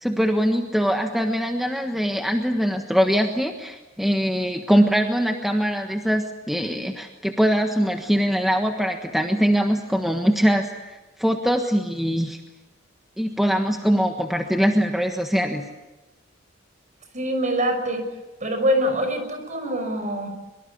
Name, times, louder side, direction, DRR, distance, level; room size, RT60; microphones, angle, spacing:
voice 1, 0.0-12.4 13.2-15.6, equal, ahead, 3 dB, 1.4 m, -22 dB
voice 2, 17.1-18.1 18.4-20.3, equal, 40° right, 7 dB, 6.1 m, -24 dB
24.5 x 23.5 x 8.6 m, 1.1 s
head